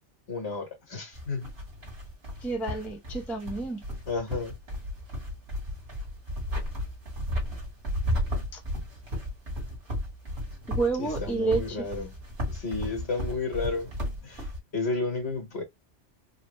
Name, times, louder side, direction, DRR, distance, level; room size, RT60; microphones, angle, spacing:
voice 1, 0.3-1.5 4.1-4.6 11.0-12.1 12.5-13.9 14.2-14.5 14.7-15.6, left 3 dB, 65° left, 1.6 m, -32 dB
sound 1, 1.1-14.6, equal, 60° right, 1.5 m, -34 dB
voice 2, 2.4-3.8 8.5-8.6 10.7-11.9, right 3 dB, ahead, 0.6 m, -29 dB
3.7 x 2.1 x 3.0 m
omnidirectional pair, 1.2 m